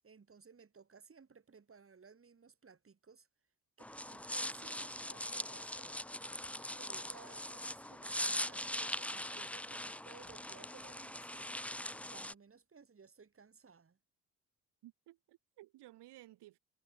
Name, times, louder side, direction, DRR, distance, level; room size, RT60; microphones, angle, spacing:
voice 1, 0.0-3.3 4.1-6.0 6.5-11.5 11.9-14.0, right 5 dB, 30° right, 2.7 m, -59 dB
sound 1, 3.8-12.3, left 1 dB, 5° left, 0.9 m, -41 dB
voice 2, 14.8-16.6, right 16 dB, 70° right, 1.8 m, -57 dB
hypercardioid pair, 55°, 43 cm